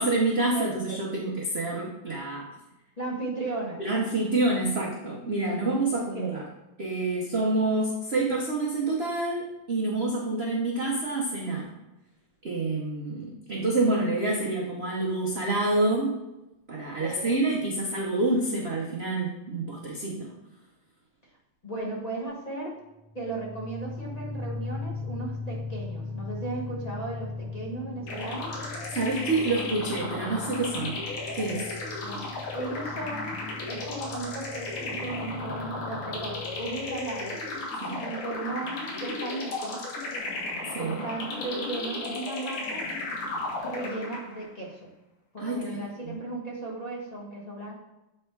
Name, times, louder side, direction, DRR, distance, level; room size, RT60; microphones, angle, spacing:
voice 1, 0.0-2.5 3.8-6.4 6.8-11.7 12.4-16.2 16.7-20.3 28.9-31.0 31.3-31.7 37.8-38.0 40.6-41.0 45.4-46.2, right 2 dB, 70° right, -3 dB, 0.6 m, -27 dB
voice 2, 0.5-1.0 3.0-3.8 5.6-6.4 17.0-17.4 21.6-22.7 23.1-28.5 32.0-37.4 38.0-39.8 40.8-42.8 43.6-44.9 45.3-47.7, right 2 dB, 30° left, -3 dB, 0.7 m, -36 dB
sound 1, 23.0-37.6, left 2 dB, 90° right, 1.6 m, -39 dB
sound 2, 28.1-44.5, left 2 dB, 85° left, 2.0 m, -35 dB
7.3 x 3.3 x 4.5 m, 0.96 s
omnidirectional pair, 2.3 m